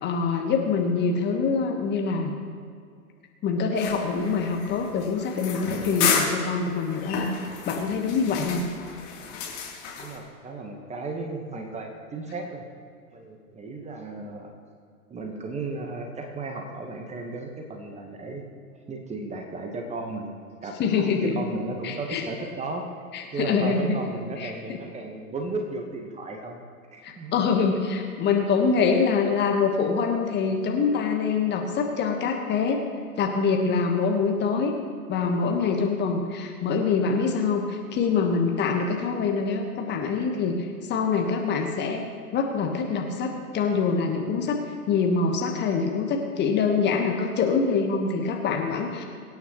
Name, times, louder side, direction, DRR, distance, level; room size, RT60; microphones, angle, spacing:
voice 1, 0.0-2.3 3.4-7.2 7.6-8.6 20.8-21.4 21.8-22.2 23.1-24.0 24.4-24.8 27.0-32.8 33.2-34.7 35.1-42.0 42.3-44.6 44.9-49.0, left 5 dB, 25° left, 3 dB, 1.4 m, -25 dB
sound 1, 3.8-10.2, left 6 dB, 45° left, 3.3 m, -31 dB
voice 2, 10.0-12.6 13.1-14.5 15.1-18.4 18.7-22.8 23.3-26.6 26.9-27.3 28.9-29.0 31.0-31.3, right 3 dB, 15° right, 3 dB, 1.3 m, -35 dB
23.5 x 9.4 x 3.1 m, 2.2 s
figure-of-eight pair, 110°, 45 cm